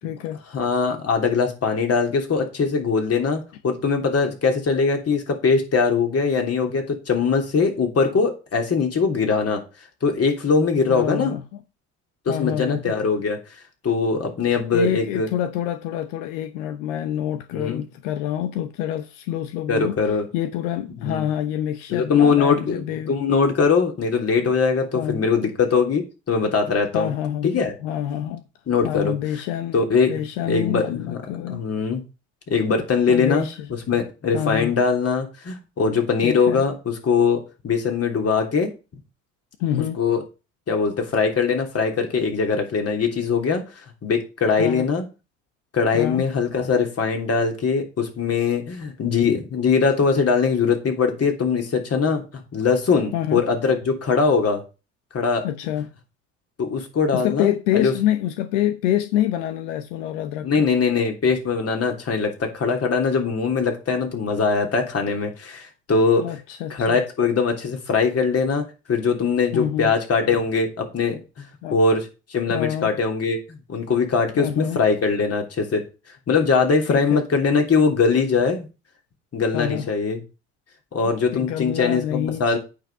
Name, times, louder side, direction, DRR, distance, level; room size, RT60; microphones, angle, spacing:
voice 1, 0.0-0.4 10.9-11.4 12.3-12.9 14.7-20.0 20.3-23.1 24.9-25.3 26.9-28.4 28.8-29.8 30.1-31.6 33.1-33.7 34.3-34.7 36.2-36.6 39.6-40.0 44.5-44.9 45.9-46.3 53.1-53.4 55.4-55.9 57.1-60.7 66.2-67.0 69.5-69.9 71.6-71.8 72.5-72.9 74.3-74.8 76.9-77.3 79.5-79.9 81.3-82.6, left 11 dB, 85° left, 0.9 m, -27 dB
voice 2, 0.5-9.6 10.0-11.3 12.2-13.4 13.8-15.3 17.5-17.8 19.7-20.2 21.0-21.2 21.9-27.1 27.4-27.7 28.7-29.1 29.7-31.2 31.5-32.0 32.5-33.5 33.9-38.7 39.7-40.2 40.7-45.1 45.7-52.2 52.5-54.6 55.1-55.5 56.6-57.9 60.4-66.2 66.7-75.8 76.3-78.7 79.3-80.2 80.9-82.6, left 5 dB, 40° left, 3.2 m, -21 dB
8.7 x 5.7 x 5.4 m
supercardioid pair, 75°, 36 cm